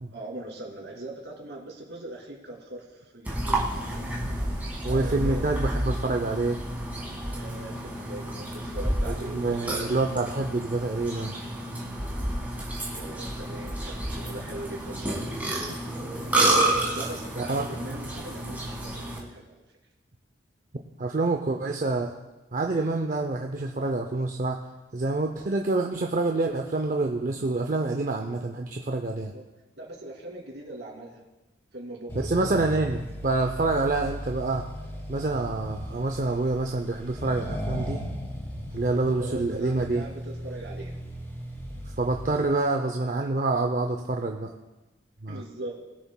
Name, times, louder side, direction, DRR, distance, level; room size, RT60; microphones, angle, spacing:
voice 1, 0.1-4.0 4.9-5.5 7.3-9.7 12.9-15.3 16.9-19.6 29.3-29.4 29.8-31.2 31.7-32.5 39.1-40.9 45.3-45.7, right 1 dB, 65° right, -1 dB, 2.4 m, -40 dB
Burping eructation, 3.3-19.2, right 1 dB, 10° right, 1.6 m, -30 dB
voice 2, 4.8-6.6 9.1-11.4 17.4-17.6 21.0-22.1 22.5-24.6 24.9-29.3 32.1-34.7 35.1-38.0 38.7-40.0 42.0-44.5 45.2-45.4, right 2 dB, 45° right, 3 dB, 0.5 m, -27 dB
Accelerating revving vroom, 32.1-42.5, equal, 15° left, 1.7 m, -37 dB
20.5 x 7.1 x 2.2 m, 1.1 s
head